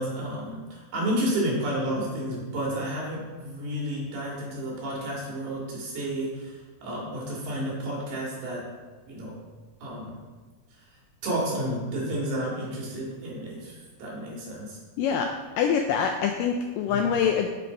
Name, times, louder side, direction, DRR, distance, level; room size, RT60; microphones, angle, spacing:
voice 1, 0.0-8.6 9.1-9.4 9.8-10.2 11.2-14.8 16.9-17.0, right 1 dB, 70° right, -4 dB, 3.7 m, -31 dB
voice 2, 15.0-15.3 15.6-17.5, left 7 dB, 85° left, 4 dB, 1.9 m, -24 dB
7.6 x 5.8 x 5.1 m, 1.3 s
omnidirectional pair, 4.3 m